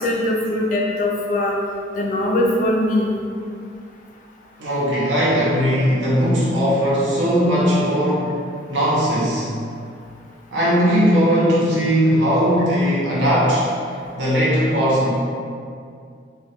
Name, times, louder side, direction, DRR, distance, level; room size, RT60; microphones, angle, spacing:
voice 1, 0.0-1.6 2.0-3.1, left 1 dB, 45° left, -1 dB, 0.3 m, -21 dB
voice 2, 4.6-8.3 8.7-9.5 10.5-13.7 14.1-15.1, equal, 80° right, -7 dB, 0.7 m, -18 dB
2.2 x 2.2 x 2.8 m, 2.3 s
head